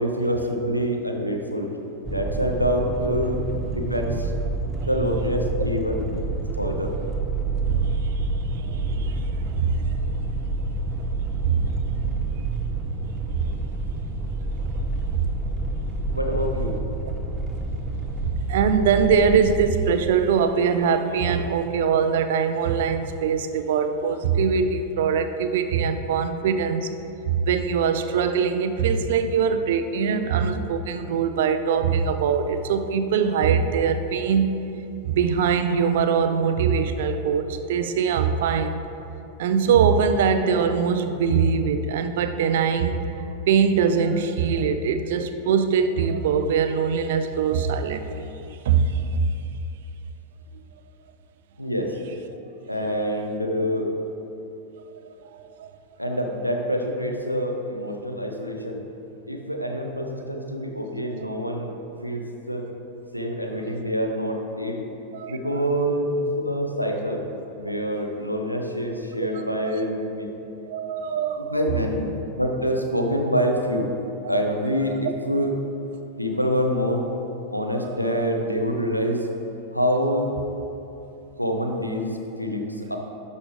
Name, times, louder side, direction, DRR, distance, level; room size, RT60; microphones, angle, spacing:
voice 1, 0.0-1.7 2.1-4.3 4.8-6.2 6.6-6.9 16.1-16.8 51.6-52.0 52.7-53.9 56.0-58.8 59.3-62.7 63.1-64.8 65.3-67.3 67.6-70.3 71.4-72.0 72.4-73.9 74.3-75.6 76.2-77.1 77.5-79.3 79.7-80.3 81.4-83.0, equal, 90° left, 3 dB, 0.8 m, -26 dB
sound 1, 2.0-19.7, right 3 dB, 20° right, 0.7 m, -28 dB
voice 2, 7.7-10.1 11.4-11.7 12.2-12.3 13.3-13.6 15.1-15.3 18.2-26.9 27.2-34.6 35.0-38.8 39.4-43.0 43.5-48.3 48.7-49.2 55.3-55.7 56.1-56.2 61.3-61.4 65.1-65.4 69.6-69.8 70.7-71.5 77.8-78.2, right 6 dB, 55° right, 8 dB, 0.5 m, -22 dB
12.0 x 5.3 x 3.2 m, 2.9 s
figure-of-eight pair, 90°, 0 cm